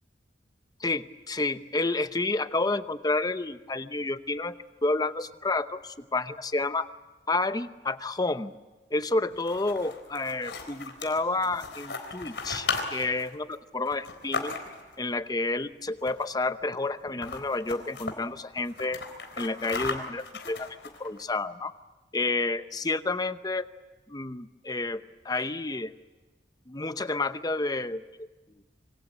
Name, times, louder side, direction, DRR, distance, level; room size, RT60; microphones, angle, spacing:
voice 1, 0.8-4.6 4.8-6.9 7.3-8.5 8.9-14.6 15.0-19.0 19.4-20.7 21.0-21.7 22.1-23.7 24.1-25.9 26.7-28.3, left 2 dB, 20° left, 11 dB, 0.8 m, -30 dB
sound 1, 9.3-15.0 16.0-16.4 16.7-16.8 17.1-18.2 18.6-21.2, left 4 dB, 70° left, 3.8 m, -36 dB
26.0 x 24.5 x 8.5 m, 1.2 s
head